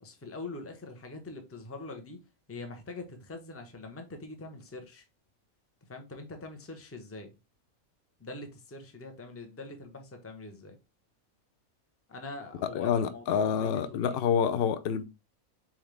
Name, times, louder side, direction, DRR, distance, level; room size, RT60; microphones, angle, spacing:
voice 1, 0.0-2.2 2.5-5.1 5.9-7.3 8.2-10.8 12.1-14.2, left 2 dB, 15° left, 0.6 m, -43 dB
voice 2, 12.7-15.0, left 7 dB, 65° left, 0.6 m, -27 dB
4.4 x 3.7 x 3.3 m
omnidirectional pair, 1.4 m